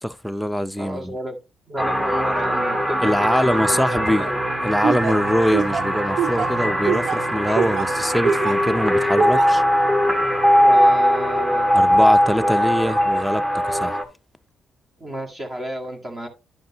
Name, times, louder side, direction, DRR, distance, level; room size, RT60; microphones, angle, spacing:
voice 1, 0.0-1.2 3.0-4.3 4.6-9.6 11.7-14.0, equal, ahead, 0.5 m, -23 dB
voice 2, 0.8-1.4 1.7-4.4 10.6-11.7 15.0-16.3, equal, 35° right, 1.9 m, -31 dB
sound 1, 1.8-14.0, equal, 15° right, 1.4 m, -20 dB
Laughter, 4.8-8.7 9.2-9.6, right 8 dB, 60° right, 0.3 m, -24 dB
10.5 x 5.2 x 2.9 m
cardioid pair, 90°, 0 cm